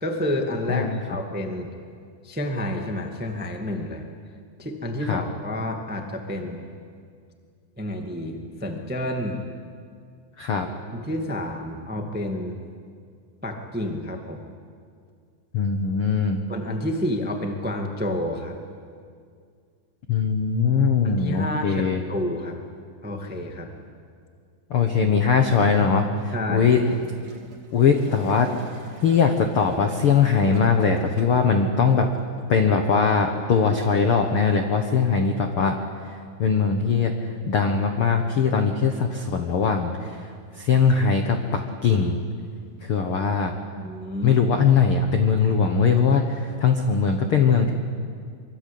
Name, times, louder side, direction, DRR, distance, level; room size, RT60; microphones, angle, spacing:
voice 1, 0.0-1.7 2.2-4.0 4.6-6.6 7.8-9.4 10.9-12.6 13.4-14.4 16.5-18.6 21.0-22.6 23.0-23.7 26.3-26.8 43.8-44.4, left 1 dB, 5° right, 3 dB, 0.7 m, -29 dB
voice 2, 15.5-16.4 20.1-22.0 24.7-26.8 27.7-28.5 29.0-32.1 32.5-35.8 36.4-37.1 37.5-40.2 40.6-42.2 42.8-43.5 44.2-47.7, left 5 dB, 70° left, 5 dB, 1.3 m, -21 dB
Gurgling / Toilet flush, 26.7-31.6 32.4-32.5, right 5 dB, 40° right, 3.1 m, -43 dB
24.5 x 24.0 x 8.6 m, 2.2 s
omnidirectional pair, 4.5 m